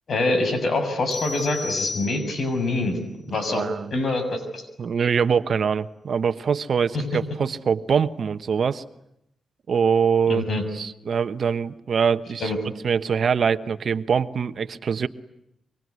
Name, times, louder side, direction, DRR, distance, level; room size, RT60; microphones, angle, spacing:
voice 1, 0.1-3.0 3.3-4.6 6.9-7.0 10.3-10.6 12.4-12.6, left 2 dB, 60° left, 8 dB, 6.8 m, -25 dB
sound 1, 1.1-2.6, left 4 dB, 85° left, 3.9 m, -33 dB
voice 2, 3.5-3.9 4.8-8.8 9.7-10.4 10.7-12.5 12.8-15.1, right 6 dB, 60° right, 11 dB, 1.1 m, -23 dB
25.5 x 24.0 x 9.7 m, 0.79 s
cardioid pair, 95°, 0 cm